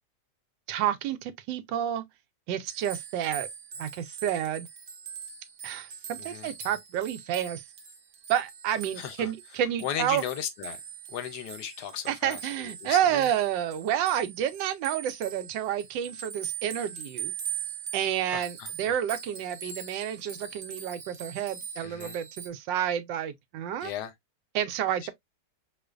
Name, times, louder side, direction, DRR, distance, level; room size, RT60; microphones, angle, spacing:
voice 1, 0.7-2.0 2.5-3.5 3.8-4.7 5.6-7.6 8.3-10.2 12.1-17.3 17.9-23.9 24.5-25.1, right 10 dB, 85° right, 1.3 m, -29 dB
sound 1, 2.7-22.5, right 7 dB, 55° right, 0.8 m, -42 dB
voice 2, 6.2-6.5 9.0-9.3 9.8-10.8 11.1-13.3 18.3-19.0 21.8-22.1 23.8-24.1, left 10 dB, 75° left, 1.1 m, -36 dB
4.5 x 2.5 x 2.3 m
omnidirectional pair, 1.9 m